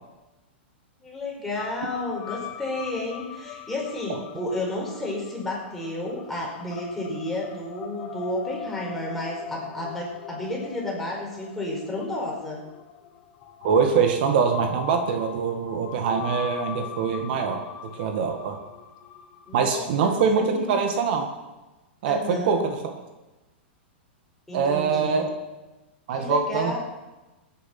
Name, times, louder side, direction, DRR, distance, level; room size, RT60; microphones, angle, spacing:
voice 1, 1.0-12.6 19.5-20.7 22.1-22.5 24.5-25.2 26.2-26.8, left 1 dB, 5° left, -4 dB, 5.2 m, -32 dB
sound 1, 1.6-19.7, left 8 dB, 40° left, 1.4 m, -41 dB
voice 2, 13.6-17.6 17.9-18.6 19.5-21.3 22.0-22.8 24.5-25.3 26.1-26.8, right 6 dB, 60° right, 5 dB, 1.8 m, -23 dB
17.5 x 10.0 x 6.0 m, 1.1 s
hypercardioid pair, 135°, 6 cm